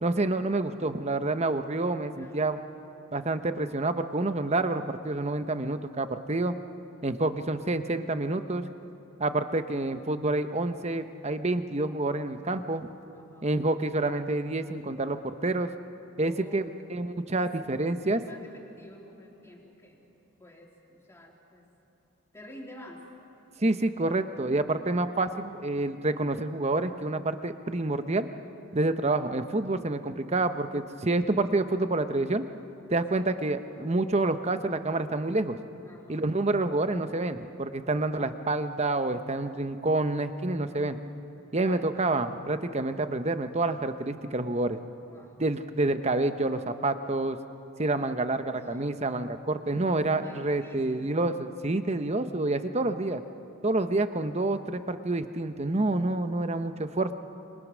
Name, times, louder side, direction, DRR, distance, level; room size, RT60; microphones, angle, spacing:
voice 1, 0.0-2.6 3.1-6.5 7.0-8.6 9.2-12.9 13.4-15.7 16.2-16.6 16.9-18.2 23.6-28.3 28.7-32.4 32.9-35.6 36.1-41.0 41.5-44.8 45.4-47.4 47.8-53.2 53.6-57.1, right 2 dB, 30° right, 9 dB, 0.9 m, -28 dB
voice 2, 2.2-2.7 13.1-13.5 16.2-16.7 17.3-17.6 18.2-20.0 20.4-21.7 22.3-23.1 33.1-33.3 35.8-36.3 41.6-41.9 45.0-45.4 48.4-48.8 50.2-51.2, left 1 dB, 15° left, -1 dB, 3.4 m, -50 dB
28.0 x 25.5 x 6.3 m, 2.8 s
head